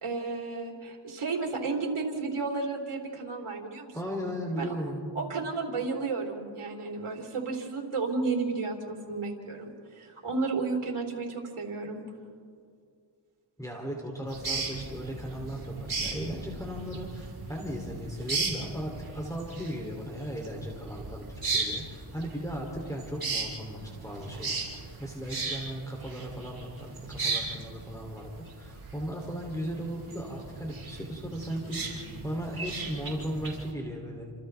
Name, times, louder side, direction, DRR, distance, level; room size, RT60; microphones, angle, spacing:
voice 1, 0.0-4.3 4.6-4.7 5.2-12.0, right 4 dB, 90° right, -1 dB, 3.6 m, -33 dB
voice 2, 3.9-5.1 13.6-34.2, equal, 5° left, -1 dB, 3.0 m, -37 dB
sound 1, 14.3-33.7, right 4 dB, 50° right, 6.2 m, -37 dB
29.5 x 28.0 x 3.5 m, 2.2 s
wide cardioid pair, 100°, 49 cm